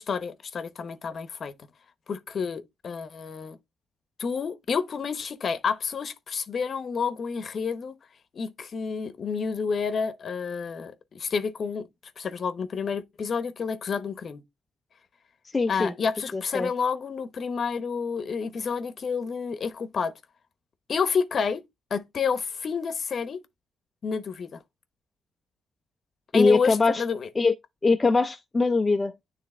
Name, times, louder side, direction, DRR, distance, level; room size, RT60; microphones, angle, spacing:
voice 1, 0.0-1.5 2.1-3.6 4.2-8.0 8.3-11.9 12.2-14.4 15.7-20.1 20.9-21.6 21.9-23.4 24.0-24.6 26.3-27.3, left 5 dB, 50° left, 0.9 m, -29 dB
voice 2, 15.5-15.9 16.3-16.7 26.3-27.0 27.4-27.5 27.8-29.1, left 3 dB, 25° left, 0.5 m, -22 dB
9.6 x 3.2 x 3.2 m
cardioid pair, 90°, 0 cm